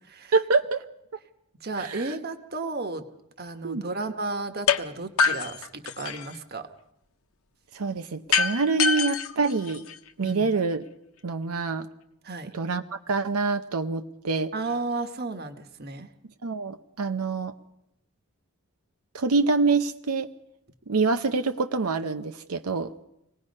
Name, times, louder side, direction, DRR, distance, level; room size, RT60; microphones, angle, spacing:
voice 1, 0.3-0.8 1.8-2.2 3.6-3.8 7.7-9.9 10.2-10.9 11.2-11.9 12.5-14.5 16.4-17.5 19.1-20.3 20.9-22.9, right 4 dB, 80° right, 7 dB, 0.8 m, -26 dB
voice 2, 1.6-3.0 3.4-6.7 10.2-10.5 12.2-12.5 14.5-16.1, right 3 dB, 45° right, 8 dB, 1.4 m, -33 dB
sound 1, 4.7-4.8 5.2-6.4 8.3-10.3, left 6 dB, 75° left, 1.1 m, -25 dB
26.0 x 19.0 x 5.4 m, 0.82 s
head